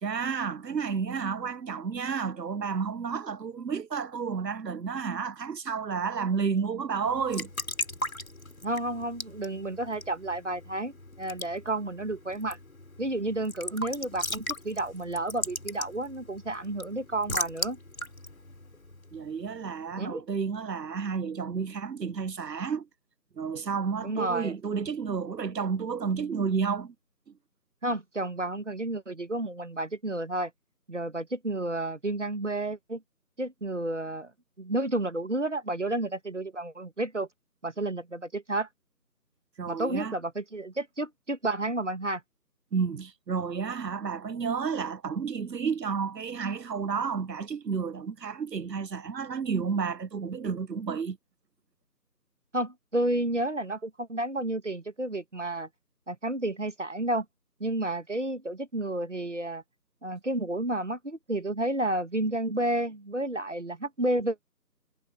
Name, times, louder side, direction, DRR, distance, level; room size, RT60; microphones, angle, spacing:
voice 1, 0.0-7.5 19.1-22.9 23.4-26.9 39.6-40.1 42.7-51.2, right 6 dB, 90° right, 0.8 m, -31 dB
Raindrop / Drip / Trickle dribble, 7.1-19.5, left 1 dB, 55° left, 3.0 m, -38 dB
voice 2, 8.6-12.6 13.0-17.8 20.0-20.2 24.0-24.5 27.8-30.5 30.9-33.0 33.4-34.3 34.6-37.3 37.6-38.7 39.7-42.2 52.5-55.7 56.1-57.2 57.6-59.6 60.0-64.4, right 1 dB, 45° right, 1.5 m, -31 dB
figure-of-eight pair, 170°, 49 cm